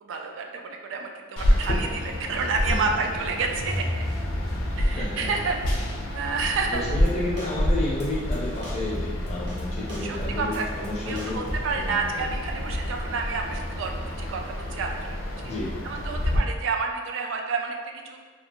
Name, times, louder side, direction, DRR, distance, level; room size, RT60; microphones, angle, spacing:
voice 1, 0.0-3.9 4.8-5.6 6.1-6.8 10.0-10.6 11.1-15.2 15.8-17.8 18.0-18.2, right 4 dB, 85° right, 3 dB, 0.3 m, -29 dB
sound 1, 1.4-16.4, left 1 dB, 85° left, 0.5 m, -29 dB
sound 2, 3.6-9.8, equal, 15° right, 0.4 m, -36 dB
voice 2, 4.7-5.5 6.7-11.4 11.7-12.2 15.4-15.8, left 1 dB, 35° left, -4 dB, 0.5 m, -32 dB
sound 3, 6.7-7.1 7.4-8.1 8.3-9.6 9.9-11.8, equal, 65° right, 0.7 m, -37 dB
2.4 x 2.4 x 2.8 m, 1.5 s
head